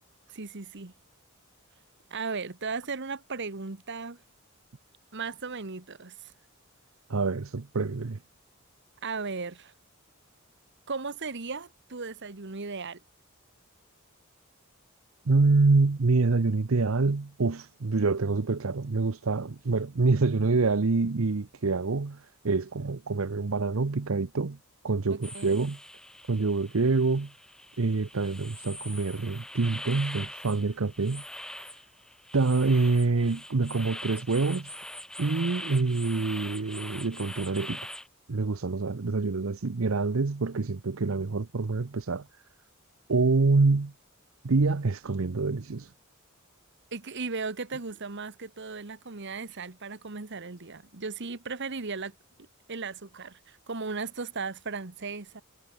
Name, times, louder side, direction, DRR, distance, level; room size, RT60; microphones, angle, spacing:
voice 1, 0.3-0.9 2.1-4.2 5.1-6.1 9.0-9.7 10.9-13.0 25.1-25.6 46.9-52.1 52.7-55.4, right 4 dB, 55° right, 1.5 m, -36 dB
voice 2, 7.1-8.2 15.3-24.6 24.8-25.8 26.3-27.3 27.8-31.2 31.5-31.7 32.3-34.7 35.2-37.9 38.3-42.3 43.1-43.9 44.4-45.9, right 3 dB, 70° right, 0.8 m, -26 dB
sound 1, 25.2-38.1, left 1 dB, 5° left, 1.2 m, -42 dB
head